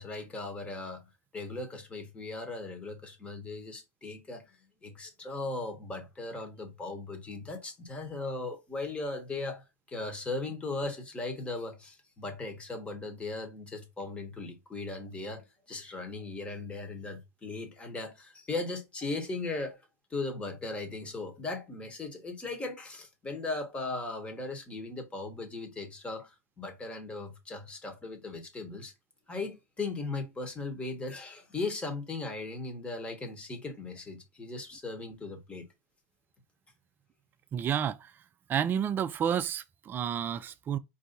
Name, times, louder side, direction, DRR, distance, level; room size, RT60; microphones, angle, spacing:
voice 1, 0.0-4.6 4.8-19.8 20.1-28.9 29.3-35.7, left 3 dB, 15° left, 1.1 m, -38 dB
voice 2, 37.5-38.0 38.5-40.8, right 9 dB, 20° right, 0.4 m, -30 dB
4.7 x 2.7 x 3.9 m
supercardioid pair, 135°, 9 cm